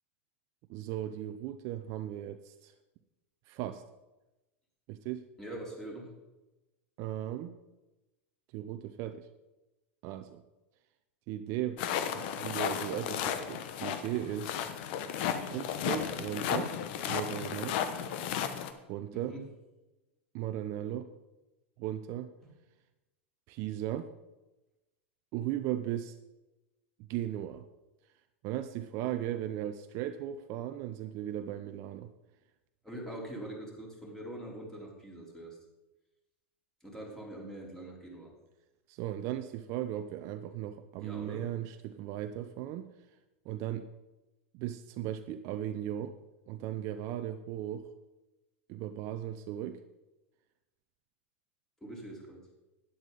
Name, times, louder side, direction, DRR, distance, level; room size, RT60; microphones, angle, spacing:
voice 1, 0.7-2.7 3.5-3.8 4.9-5.2 7.0-7.5 8.5-9.3 10.0-10.4 11.3-11.8 12.1-14.6 15.5-16.7 17.1-17.8 18.9-19.4 20.3-21.1 21.8-22.3 23.5-24.1 25.3-26.1 27.0-27.6 28.4-32.1 38.9-42.9 43.5-43.9 44.5-46.1 46.5-47.9 48.7-49.8, right 12 dB, 45° right, 9 dB, 0.6 m, -37 dB
voice 2, 5.4-6.1 19.1-19.4 32.8-35.6 36.8-38.3 41.0-41.5 51.8-52.5, right 1 dB, 5° left, -3 dB, 3.7 m, -43 dB
sound 1, 11.8-18.7, left 8 dB, 55° left, 1.0 m, -34 dB
11.5 x 10.0 x 3.9 m, 1.0 s
hypercardioid pair, 90°, 7 cm